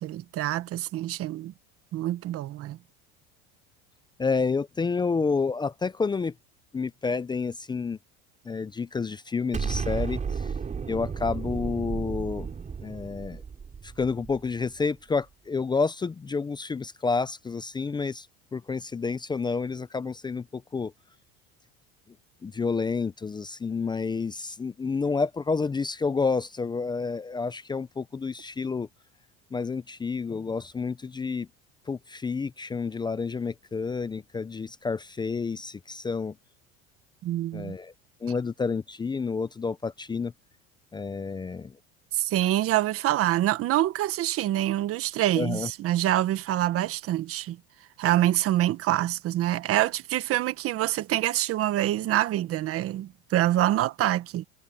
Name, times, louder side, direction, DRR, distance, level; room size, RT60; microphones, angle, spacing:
voice 1, 0.0-1.5 1.9-2.8 37.2-37.7 42.1-47.6 48.0-54.4, right 14 dB, 50° right, 1.5 m, -26 dB
voice 2, 4.2-6.3 6.7-8.0 8.4-10.5 10.9-12.5 12.8-13.4 13.8-18.3 18.5-20.9 22.4-28.9 29.5-31.5 31.9-36.3 37.5-37.9 38.2-40.3 40.9-41.8 45.3-45.7, left 4 dB, 15° left, 0.6 m, -29 dB
Explosion, 9.5-14.7, right 6 dB, 25° right, 4.4 m, -33 dB
supercardioid pair, 120°, 30 cm